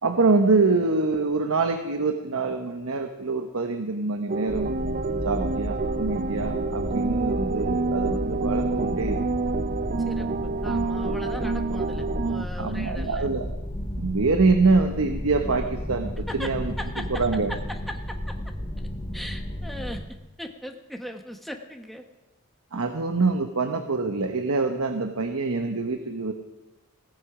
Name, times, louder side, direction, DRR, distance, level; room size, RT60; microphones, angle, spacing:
voice 1, 0.0-4.7 5.2-9.2 11.2-11.3 12.6-13.5 14.0-16.7 17.1-17.5 22.7-26.3, right 3 dB, 70° right, 6 dB, 1.0 m, -25 dB
sound 1, 4.3-12.5, right 3 dB, 40° right, 0.5 m, -28 dB
sound 2, 4.5-20.0, left 1 dB, 25° left, 1.3 m, -33 dB
voice 2, 10.0-10.3 10.6-13.3 16.3-16.5 16.8-18.3 19.1-20.0 20.4-22.0, equal, ahead, 3 dB, 1.2 m, -38 dB
16.5 x 15.5 x 4.9 m, 1.0 s
head